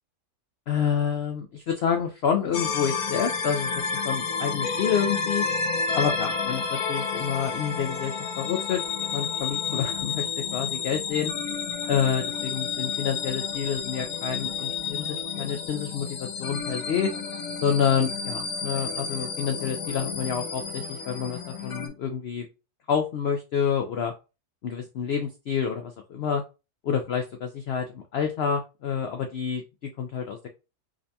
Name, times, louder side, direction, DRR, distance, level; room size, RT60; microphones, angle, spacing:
voice 1, 0.7-5.5 5.9-8.8 9.1-11.3 11.9-17.1 17.6-22.5 22.9-24.1 24.6-26.4 26.8-29.6 30.0-30.5, left 7 dB, 90° left, 4 dB, 0.5 m, -28 dB
sound 1, 2.5-21.9, left 5 dB, 70° left, 1.1 m, -31 dB
5.0 x 2.2 x 2.7 m, 0.29 s
omnidirectional pair, 1.7 m